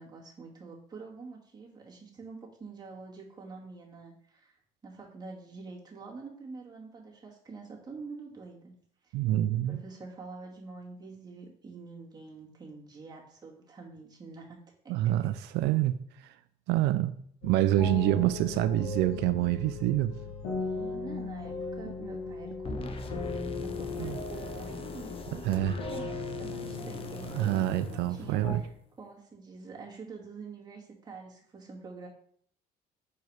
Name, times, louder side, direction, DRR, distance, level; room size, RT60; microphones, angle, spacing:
voice 1, 0.0-8.7 9.0-9.2 9.5-14.6 14.8-15.1 15.6-15.8 20.6-32.1, right 4 dB, 25° right, -3 dB, 2.1 m, -46 dB
voice 2, 9.1-9.8 14.9-15.9 16.7-17.1 17.4-20.1 24.0-24.2 25.4-25.7 27.4-28.6, right 13 dB, 85° right, 11 dB, 0.4 m, -26 dB
sound 1, 17.4-28.5, left 4 dB, 85° left, 1.7 m, -38 dB
sound 2, 22.6-28.8, left 3 dB, 35° left, 0.8 m, -42 dB
5.5 x 4.7 x 4.7 m, 0.63 s
cardioid pair, 110°, 17 cm